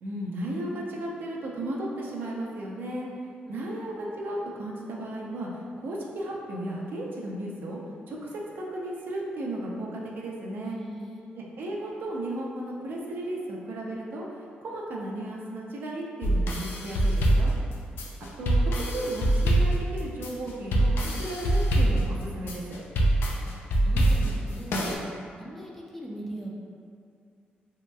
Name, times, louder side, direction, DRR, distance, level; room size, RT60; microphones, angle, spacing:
voice 1, 0.0-3.1 3.5-5.5 5.8-7.8 8.1-10.8 11.3-14.2 14.6-17.5 18.4-22.8, right 1 dB, 70° right, -3 dB, 0.5 m, -34 dB
voice 2, 10.6-11.2 18.1-18.2 23.8-24.7 25.4-26.5, right 1 dB, 5° left, -3 dB, 0.4 m, -40 dB
sound 1, 16.2-24.9, right 1 dB, 85° left, 0.4 m, -24 dB
3.0 x 2.8 x 2.2 m, 2.3 s
cardioid pair, 115°, 4 cm